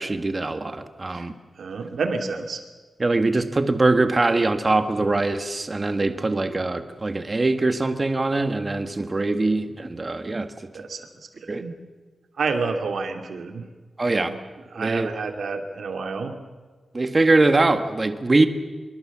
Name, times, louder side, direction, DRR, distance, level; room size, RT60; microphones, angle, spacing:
voice 1, 0.0-1.3 3.0-10.5 11.5-11.6 14.0-14.3 14.8-15.1 16.9-18.5, right 2 dB, 25° right, 8 dB, 1.7 m, -22 dB
voice 2, 1.6-2.6 10.7-11.0 11.3-11.7 12.4-13.6 14.0-14.4 14.7-16.4, right 4 dB, 80° right, 5 dB, 2.9 m, -29 dB
25.0 x 23.5 x 7.4 m, 1.4 s
wide cardioid pair, 150°, 0 cm